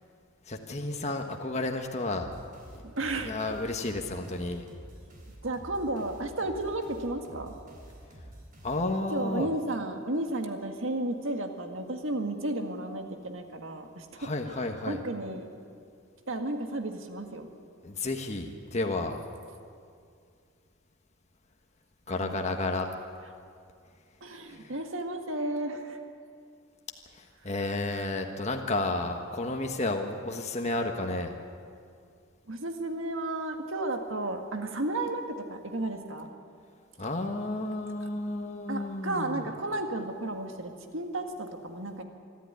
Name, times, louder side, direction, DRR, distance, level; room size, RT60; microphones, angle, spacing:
voice 1, 0.5-2.3 3.2-4.6 8.6-9.5 14.2-15.0 17.8-19.2 22.1-22.9 24.5-24.7 27.1-31.3 37.0-39.5, left 2 dB, 35° left, 3 dB, 1.4 m, -32 dB
sound 1, 2.1-9.3, right 1 dB, 40° right, 3.9 m, -49 dB
voice 2, 2.8-3.3 5.4-7.5 9.1-14.5 14.9-15.5 16.3-17.5 22.2-22.4 24.2-26.0 32.5-36.3 38.7-42.0, right 2 dB, 70° right, 5 dB, 1.9 m, -33 dB
24.5 x 13.0 x 9.7 m, 2.3 s
head